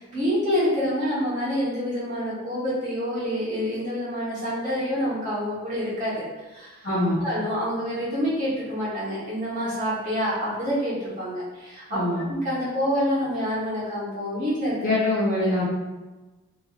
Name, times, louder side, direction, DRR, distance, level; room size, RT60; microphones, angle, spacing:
voice 1, 0.0-6.2 6.5-6.8 7.2-12.0 12.3-14.8, equal, 35° right, -10 dB, 1.1 m, -27 dB
voice 2, 6.8-7.2 11.9-12.2 14.8-15.7, left 1 dB, 40° left, -10 dB, 0.6 m, -23 dB
2.9 x 2.5 x 2.4 m, 1.2 s
head